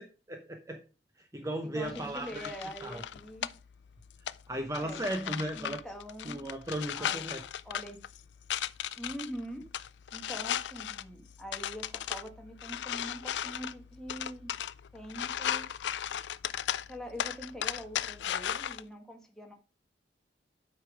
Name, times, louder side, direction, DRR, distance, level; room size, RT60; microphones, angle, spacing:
voice 1, 0.3-0.8 1.2-2.5 2.8-3.0 4.5-5.8 6.2-7.4, right 1 dB, 20° right, 4 dB, 0.8 m, -36 dB
voice 2, 1.6-3.5 4.8-5.0 5.5-6.4 7.0-7.2 7.6-8.0 9.0-9.7 10.1-14.5 14.9-15.7 16.9-19.5, equal, 5° left, 2 dB, 1.5 m, -43 dB
sound 1, 1.8-18.8, left 10 dB, 85° left, 0.4 m, -37 dB
8.0 x 5.2 x 4.9 m, 0.34 s
head